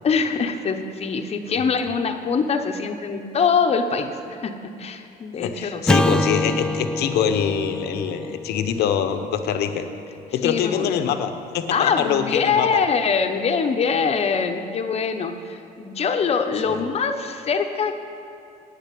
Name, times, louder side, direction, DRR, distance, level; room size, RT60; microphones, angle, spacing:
voice 1, 0.0-5.8 6.4-6.6 10.4-10.9 11.7-18.0, left 5 dB, 35° left, 6 dB, 0.9 m, -23 dB
voice 2, 5.4-9.9 10.3-12.7, left 8 dB, 75° left, 8 dB, 0.8 m, -24 dB
Acoustic guitar / Strum, 5.8-10.3, left 1 dB, 5° left, 0.3 m, -26 dB
9.1 x 7.1 x 8.4 m, 2.8 s
cardioid pair, 110°, 17 cm